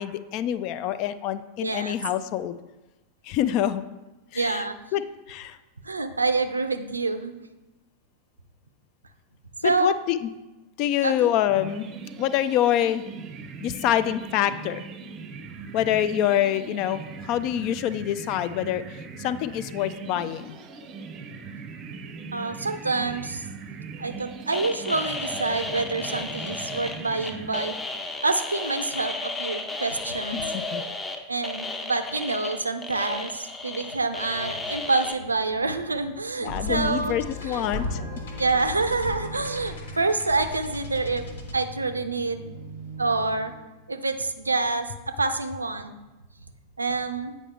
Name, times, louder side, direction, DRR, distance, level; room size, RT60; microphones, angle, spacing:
voice 1, 0.0-2.6 3.2-3.8 4.3-4.6 4.9-5.0 5.3-5.6 9.6-10.3 10.8-11.9 12.2-13.0 13.6-14.9 15.7-20.6 30.3-30.8 36.4-38.0, left 11 dB, 40° left, 14 dB, 0.4 m, -26 dB
voice 2, 1.6-1.9 4.3-4.8 5.8-7.3 9.6-10.0 11.0-11.3 22.3-23.5 24.0-27.8 28.2-30.4 31.3-37.2 37.5-37.7 38.4-41.2 41.5-42.5 43.0-43.5 43.9-45.9 46.8-47.3, right 3 dB, 80° right, 9 dB, 0.5 m, -27 dB
sound 1, 11.5-28.1, right 5 dB, 35° right, 0.6 m, -40 dB
sound 2, 24.5-35.1, left 2 dB, 15° left, 0.7 m, -34 dB
sound 3, 36.5-43.8, left 1 dB, 65° left, 1.3 m, -36 dB
8.4 x 5.2 x 3.4 m, 1.1 s
figure-of-eight pair, 90°, 0 cm